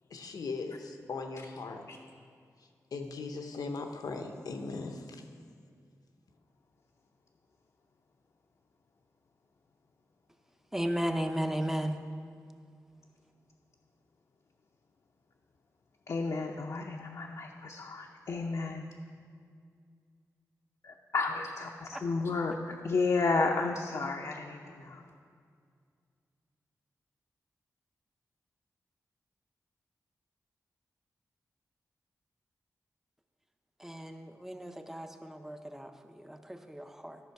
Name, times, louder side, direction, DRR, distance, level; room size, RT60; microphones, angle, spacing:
voice 1, 0.1-1.8 2.9-5.3, left 4 dB, 85° left, 5 dB, 0.8 m, -39 dB
voice 2, 10.7-12.0 21.9-22.0 33.8-37.2, equal, 5° right, 6 dB, 0.6 m, -35 dB
voice 3, 16.1-18.9 20.8-25.1, left 3 dB, 60° left, 1 dB, 0.6 m, -32 dB
13.0 x 5.6 x 4.6 m, 2.2 s
wide cardioid pair, 105°, 6 cm